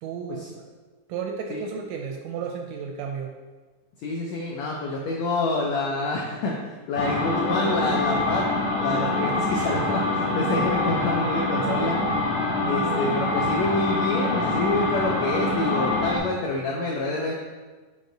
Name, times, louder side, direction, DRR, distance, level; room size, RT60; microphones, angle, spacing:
voice 1, 0.0-0.6 1.1-3.3, right 6 dB, 80° right, 2 dB, 1.8 m, -33 dB
voice 2, 4.0-8.5 8.8-12.0 12.7-17.3, left 2 dB, 85° left, -1 dB, 1.5 m, -27 dB
sound 1, 7.0-16.2, left 2 dB, 70° left, 1.7 m, -25 dB
5.3 x 5.1 x 3.9 m, 1.3 s
omnidirectional pair, 3.8 m